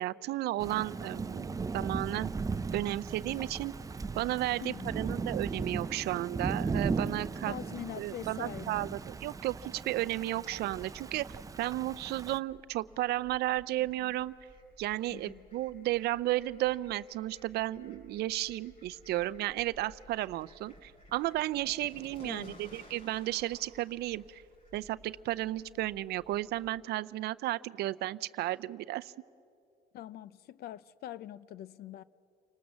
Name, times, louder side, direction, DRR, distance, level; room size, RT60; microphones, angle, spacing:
voice 1, 0.0-2.3 2.7-3.7 4.1-7.5 8.0-11.3 11.6-14.4 14.8-24.4 24.7-29.1, right 15 dB, 75° right, 0.5 m, -33 dB
Thunder / Rain, 0.6-12.4, right 4 dB, 20° right, 0.6 m, -37 dB
voice 2, 4.6-5.1 7.4-9.0 14.0-14.2 15.1-15.5 22.2-22.6 29.9-32.0, left 12 dB, 70° left, 0.6 m, -44 dB
Fowl, 10.4-26.7, equal, 40° left, 6.4 m, -57 dB
29.5 x 19.5 x 7.3 m
cardioid pair, 110°, 17 cm